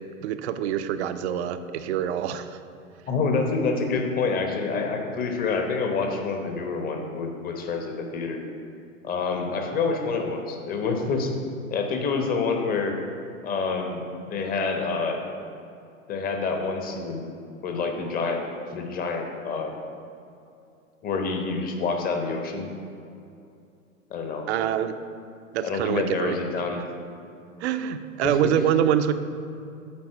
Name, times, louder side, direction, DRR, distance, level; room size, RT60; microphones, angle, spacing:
voice 1, 0.0-2.6 24.5-24.9 25.5-26.4 27.6-29.1, right 10 dB, 55° right, 10 dB, 0.6 m, -25 dB
voice 2, 3.1-8.4 9.0-11.3 11.7-12.9 13.4-15.2 16.1-17.3 17.6-18.4 18.7-19.7 21.0-22.7 24.1-24.5 25.6-26.8 28.2-28.3, left 4 dB, 20° left, 3 dB, 0.9 m, -27 dB
8.7 x 4.1 x 6.5 m, 2.5 s
hypercardioid pair, 115°, 41 cm